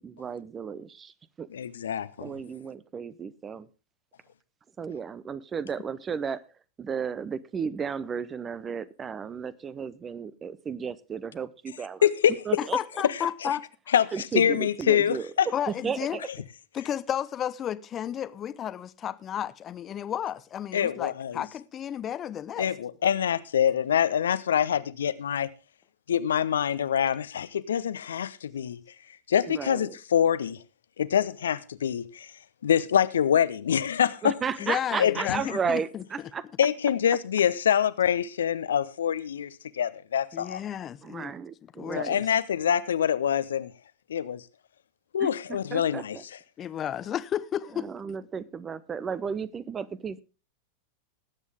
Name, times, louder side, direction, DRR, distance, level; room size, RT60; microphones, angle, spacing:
voice 1, 0.0-1.5 2.2-3.7 4.8-6.4 6.8-12.1 12.5-12.8 14.1-16.2 29.5-29.9 34.2-36.4 41.0-42.2 45.2-46.2 47.7-50.2, right 6 dB, 20° right, 0.7 m, -34 dB
voice 2, 1.5-2.3 12.0-12.3 13.9-15.5 20.7-21.4 22.6-25.5 26.1-28.8 29.3-30.6 31.0-32.3 32.6-34.3 35.0-35.3 36.6-40.6 42.0-43.7 44.1-44.4 45.1-46.2, left 9 dB, 65° left, 0.7 m, -25 dB
voice 3, 12.6-13.6 15.5-16.2 16.7-22.7 34.6-36.0 40.3-41.3 41.8-42.2 46.6-47.9, left 10 dB, 25° left, 0.7 m, -32 dB
19.5 x 8.3 x 3.5 m
figure-of-eight pair, 90°, 0 cm